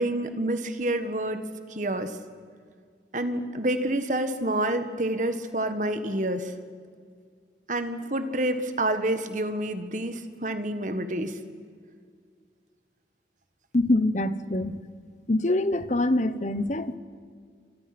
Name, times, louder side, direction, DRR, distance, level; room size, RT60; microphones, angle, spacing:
voice 1, 0.0-1.4 1.7-2.1 3.1-6.5 7.7-11.4, right 1 dB, 45° right, 9 dB, 1.7 m, -28 dB
voice 2, 13.7-14.8 15.3-17.0, left 2 dB, 40° left, 13 dB, 1.0 m, -24 dB
29.0 x 26.0 x 6.1 m, 2.1 s
head